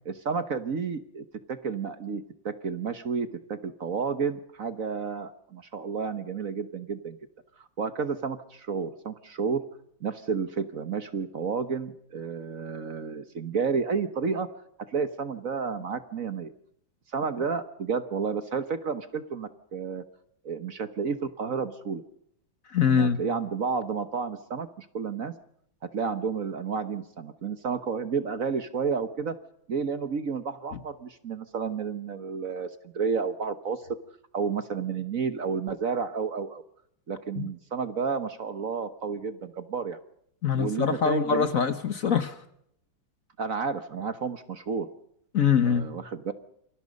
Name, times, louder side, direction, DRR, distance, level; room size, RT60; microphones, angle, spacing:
voice 1, 0.0-7.2 7.8-9.6 10.0-14.5 14.9-16.5 17.1-20.0 20.4-22.0 22.8-25.3 25.9-29.4 29.7-33.8 34.3-36.6 37.1-40.0 40.6-41.5 43.4-44.9 45.6-46.3, right 5 dB, 50° right, 11 dB, 1.4 m, -31 dB
voice 2, 22.7-23.2 37.4-37.5 40.4-42.4 45.3-45.9, left 7 dB, 50° left, 12 dB, 1.3 m, -24 dB
28.5 x 23.5 x 5.3 m, 0.72 s
omnidirectional pair, 2.2 m